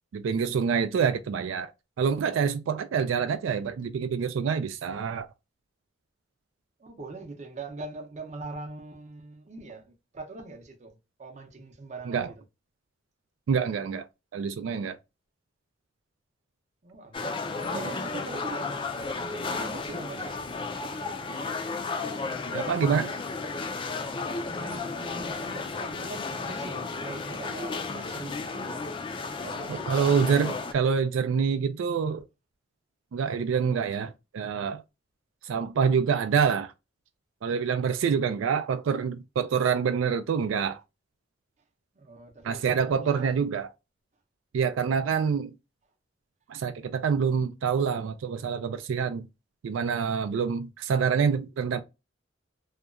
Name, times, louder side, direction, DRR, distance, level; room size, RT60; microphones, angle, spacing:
voice 1, 0.1-1.7 2.0-5.3 12.1-12.3 13.5-14.0 14.3-15.0 17.7-17.9 22.5-23.1 29.7-32.2 33.1-34.8 35.4-36.7 37.4-40.8 42.4-43.7 44.5-45.5 46.5-49.3 49.6-51.8, right 6 dB, 85° right, 0.3 m, -26 dB
voice 2, 6.8-12.3 16.8-18.7 19.2-20.3 24.4-28.8 29.4-30.2 42.0-43.4, right 3 dB, 35° right, 0.6 m, -42 dB
sound 1, 17.1-30.7, left 4 dB, 25° left, 0.3 m, -33 dB
2.8 x 2.2 x 2.4 m
head